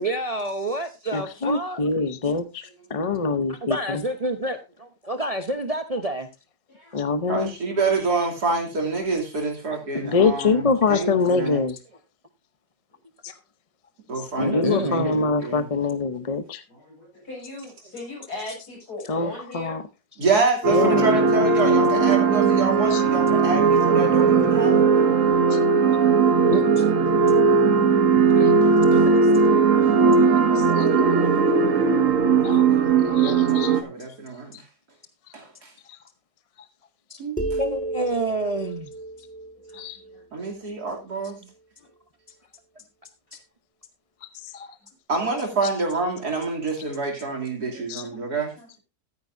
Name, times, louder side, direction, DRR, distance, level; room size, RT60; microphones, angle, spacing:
voice 1, 0.0-2.1 3.5-6.3 9.7-9.8 13.3-13.4 14.4-15.1 26.5-26.9 28.3-28.5 28.9-29.2 37.1-37.2 37.6-38.9 43.3-43.4, right 1 dB, 30° right, 0.8 m, -29 dB
voice 2, 1.1-2.5 2.9-4.0 6.9-7.5 10.0-11.8 14.4-16.6 19.1-19.8 20.7-21.2 22.9-23.0 25.5-25.6 30.6-30.9 32.4-32.6 33.1-33.7 39.8-40.0 44.5-44.7 47.9-48.0, left 4 dB, 35° left, 0.5 m, -24 dB
voice 3, 2.6-3.2 6.7-7.0 10.0-10.1 16.7-19.8 24.7-24.9 28.4-28.5 28.8-29.2 29.8-30.2 39.7-40.2 40.5-40.7 41.4-41.5 41.8-41.9 47.5-47.8 48.6-48.7, left 2 dB, 75° left, 7.9 m, -40 dB
voice 4, 7.3-11.6 14.1-15.7 20.2-25.1 28.6-28.7 30.8-32.0 32.4-34.5 35.3-35.7 37.2-37.7 40.3-41.4 45.1-48.5, right 3 dB, 75° right, 3.4 m, -27 dB
sound 1, 20.6-33.8, right 5 dB, 55° right, 1.5 m, -18 dB
sound 2, 37.4-40.9, right 2 dB, 5° left, 1.4 m, -33 dB
14.0 x 9.5 x 2.6 m
omnidirectional pair, 1.7 m